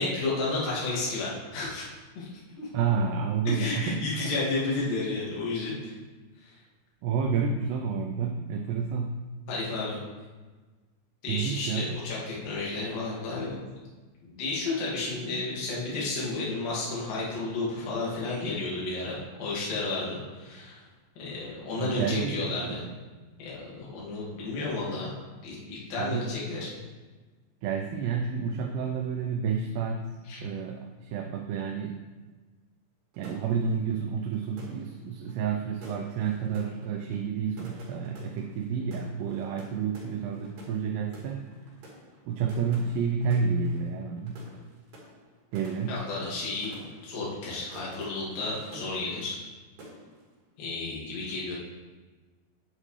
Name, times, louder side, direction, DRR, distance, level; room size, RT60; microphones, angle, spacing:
voice 1, 0.0-1.8 2.2-2.3 2.6-2.7 3.5-5.9 6.4-6.5 9.5-10.0 11.2-13.6 14.2-20.8 21.2-22.7 23.4-25.1 25.4-26.7 30.3-30.4 45.9-46.7 47.0-49.4 50.6-51.5, left 3 dB, 60° left, -6 dB, 3.6 m, -32 dB
voice 2, 2.7-4.3 7.0-9.2 11.3-12.0 21.8-23.0 26.0-26.3 27.6-30.1 30.4-32.0 33.2-41.4 42.3-44.4 45.5-45.9, right 6 dB, 80° right, 3 dB, 2.6 m, -30 dB
sound 1, 33.1-49.5 49.8-50.3, right 1 dB, 55° right, 3.4 m, -50 dB
9.3 x 8.5 x 3.2 m, 1.3 s
omnidirectional pair, 5.0 m